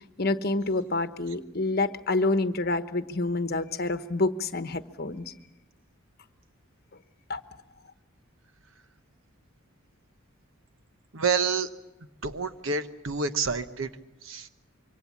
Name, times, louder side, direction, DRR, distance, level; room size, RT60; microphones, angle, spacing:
voice 1, 0.2-5.3 7.3-7.4, left 2 dB, 45° left, 10 dB, 1.1 m, -27 dB
voice 2, 11.1-11.7 12.2-13.9 14.2-14.5, right 5 dB, 65° right, 10 dB, 1.1 m, -28 dB
26.0 x 24.0 x 7.3 m, 0.92 s
head